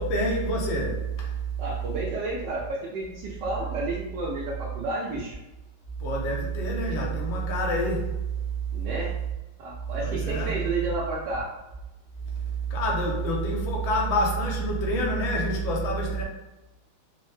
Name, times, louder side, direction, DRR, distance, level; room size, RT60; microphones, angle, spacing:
voice 1, 0.0-1.3 6.0-8.2 10.0-10.6 12.7-16.2, right 1 dB, 75° left, -2 dB, 1.5 m, -27 dB
voice 2, 1.6-5.4 8.7-9.1 9.6-11.5, right 2 dB, 75° right, -3 dB, 1.0 m, -31 dB
4.5 x 2.1 x 3.1 m, 1.0 s
omnidirectional pair, 2.3 m